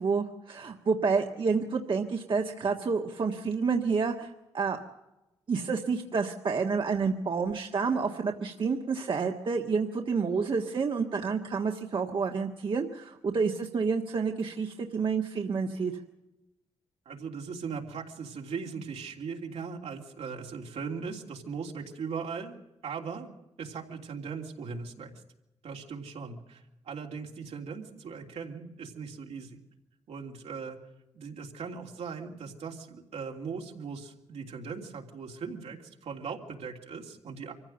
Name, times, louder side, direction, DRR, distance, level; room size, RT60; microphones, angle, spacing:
voice 1, 0.0-4.3 4.5-4.8 5.5-15.9, right 5 dB, 50° right, 2 dB, 1.5 m, -29 dB
voice 2, 17.0-22.5 22.8-23.3 23.6-25.1 25.6-29.6 30.1-30.8 31.1-37.5, right 5 dB, 75° right, 1 dB, 3.1 m, -39 dB
24.5 x 15.0 x 7.9 m, 0.96 s
cardioid pair, 85°, 11 cm